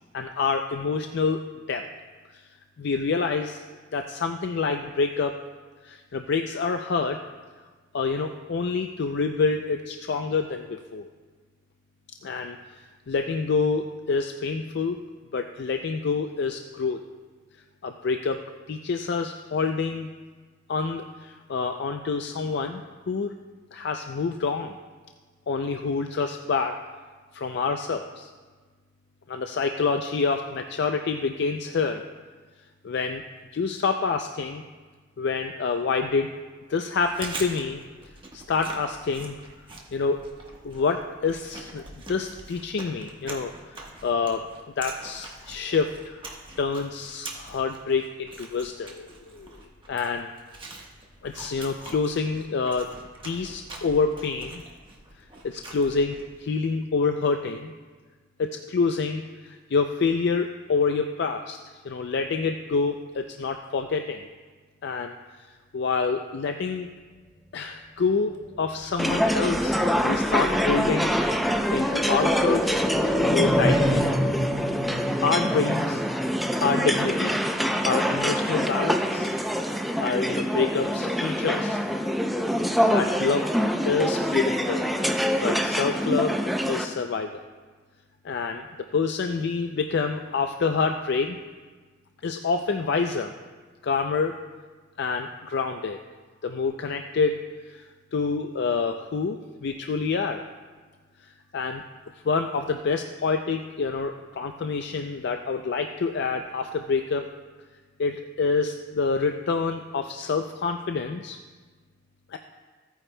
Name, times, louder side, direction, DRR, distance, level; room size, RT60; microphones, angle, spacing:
voice 1, 0.1-1.8 2.3-2.4 2.8-3.6 3.9-5.4 5.8-7.2 7.9-11.1 12.2-12.6 13.1-15.0 15.3-17.0 17.8-18.4 18.7-20.1 20.7-23.3 23.7-24.8 25.5-26.8 27.3-28.3 29.3-32.1 32.8-33.2 33.5-34.6 35.2-36.3 36.7-37.8 38.3-39.3 39.9-40.3 40.6-43.8 44.0-44.5 44.8-46.2 46.6-49.6 49.9-50.3 51.2-52.9 53.2-54.6 55.4-57.7 58.4-61.6 61.8-64.2 64.8-65.2 65.7-66.9 67.5-69.8 70.0-71.1 71.7-72.8 73.2-74.1 75.2-76.0 76.6-77.4 77.8-79.3 80.0-81.8 82.5-82.6 82.9-83.5 83.8-84.9 85.4-86.4 86.7-87.4 88.2-88.7 88.9-91.4 92.2-93.3 93.8-94.4 95.0-96.0 96.4-97.4 97.7-97.8 98.1-100.4 101.5-101.8 102.2-107.3 108.0-111.4 112.3-112.4, left 4 dB, 60° left, 6 dB, 0.4 m, -27 dB
Chewing mastication, 36.9-56.4, right 2 dB, 25° right, 1.3 m, -43 dB
sound 1, 68.7-78.5 78.8-78.9, equal, 20° left, 2.2 m, -29 dB
sound 2, 69.0-86.8, equal, ahead, 0.5 m, -25 dB
15.5 x 9.2 x 2.2 m, 1.4 s
head